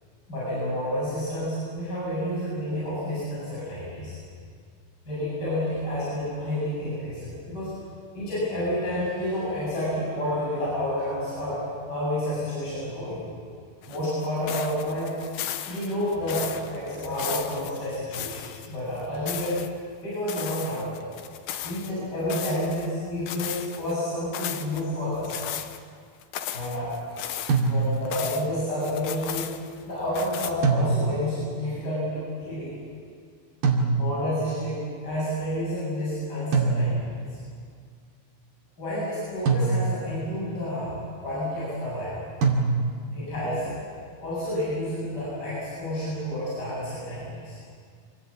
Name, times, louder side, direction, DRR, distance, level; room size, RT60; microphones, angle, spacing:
voice 1, 0.3-4.1 5.1-7.7 8.1-11.6 11.9-13.3 13.9-15.1 15.6-19.6 20.0-21.0 21.6-25.4 26.5-27.1 27.7-29.5 29.9-32.7 33.9-37.1 38.8-42.2 43.1-43.8 44.2-47.6, left 1 dB, 20° left, -9 dB, 8.4 m, -30 dB
sound 1, 13.8-18.7 19.0-19.7 20.3-21.9 22.3-22.9 23.3-23.9 24.3-24.8 25.2-25.8 26.2-28.5 28.8-29.8 30.1-30.5, left 11 dB, 70° left, 2.4 m, -35 dB
sound 2, 27.5-28.2 30.6-31.4 33.6-34.4 36.5-37.3 39.5-40.2 42.4-43.2, right 4 dB, 65° right, 4.2 m, -24 dB
26.5 x 19.0 x 8.5 m, 2.1 s
omnidirectional pair, 5.0 m